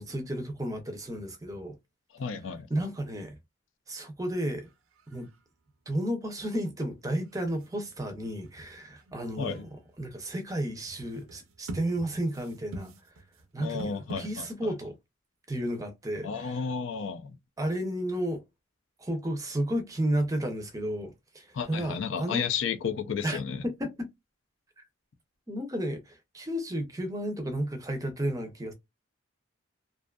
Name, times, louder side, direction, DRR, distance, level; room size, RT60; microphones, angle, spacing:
voice 1, 0.0-1.8 2.7-3.4 3.9-4.7 5.1-5.3 5.9-12.9 13.5-14.9 15.5-16.6 17.6-18.4 19.0-22.4 23.2-24.1 25.5-28.7, right 1 dB, 15° right, 0.5 m, -32 dB
voice 2, 2.1-2.7 9.4-9.6 13.6-14.7 16.2-17.3 21.5-23.6, left 6 dB, 65° left, 0.4 m, -32 dB
sound 1, 4.7-4.8 5.0-5.4 7.3-14.6, right 1 dB, 85° right, 0.5 m, -45 dB
2.5 x 2.3 x 2.2 m
head